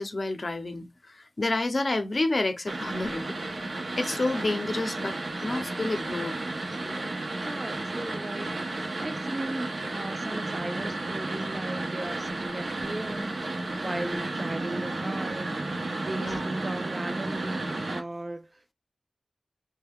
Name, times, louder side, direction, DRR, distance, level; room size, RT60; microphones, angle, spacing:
voice 1, 0.0-3.4 3.6-6.4 6.8-7.0 13.9-14.2 16.2-16.5, left 2 dB, 50° left, 0.5 m, -30 dB
sound 1, 2.7-18.0, right 2 dB, 70° right, 0.6 m, -33 dB
voice 2, 7.4-13.4 13.8-15.6 16.0-18.7, right 1 dB, 35° right, 0.3 m, -37 dB
2.3 x 2.1 x 3.3 m
wide cardioid pair, 65°, 0 cm